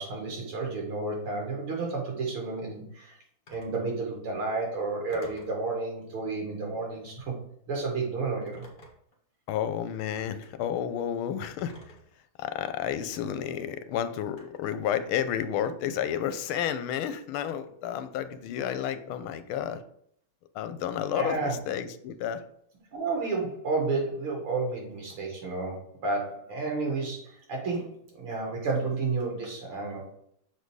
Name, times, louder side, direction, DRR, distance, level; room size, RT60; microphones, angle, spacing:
voice 1, 0.0-3.2 3.5-7.3 7.7-8.7 21.1-21.6 22.9-30.1, right 3 dB, 90° right, 0 dB, 2.8 m, -31 dB
Telephone, 3.5-3.8 5.1-5.6 6.9-7.2 8.4-9.2 10.1-10.5 11.6-12.1 13.1-13.3 14.4-14.8, equal, 30° left, 1.4 m, -52 dB
voice 2, 9.5-11.7 12.4-19.8 20.5-22.4, left 9 dB, 85° left, 12 dB, 1.5 m, -31 dB
6.8 x 4.5 x 4.7 m, 0.69 s
omnidirectional pair, 2.3 m